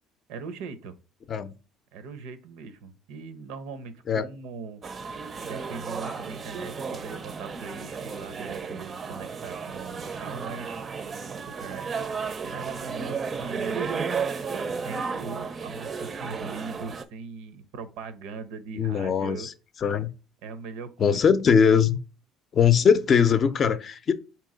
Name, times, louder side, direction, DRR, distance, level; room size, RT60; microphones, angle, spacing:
voice 1, 0.3-1.0 1.9-4.8 5.4-10.8 11.5-11.9 12.4-13.9 14.8-19.5 20.4-21.4, right 5 dB, 85° right, 0.7 m, -40 dB
sound 1, 4.8-17.0, right 5 dB, 35° right, 0.5 m, -33 dB
voice 2, 18.7-19.5 19.8-20.1 21.0-22.0 22.5-24.1, left 7 dB, 40° left, 0.5 m, -21 dB
3.7 x 3.0 x 4.9 m
cardioid pair, 100°, 0 cm